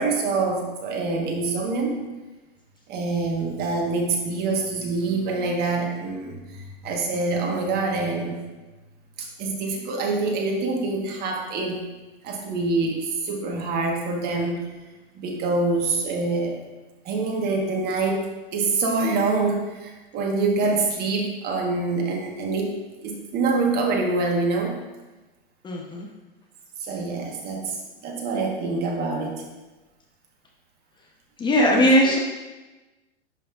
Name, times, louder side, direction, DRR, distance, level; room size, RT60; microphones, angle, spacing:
voice 1, 0.0-2.0 2.9-8.4 9.2-11.8 12.2-14.6 15.1-16.6 17.0-24.8 26.8-27.8 28.0-29.4 31.7-31.8, right 3 dB, 30° right, 1 dB, 1.4 m, -25 dB
voice 2, 25.6-26.1 31.4-32.2, equal, 15° left, -1 dB, 0.9 m, -19 dB
10.5 x 5.5 x 2.5 m, 1.1 s
hypercardioid pair, 125°, 32 cm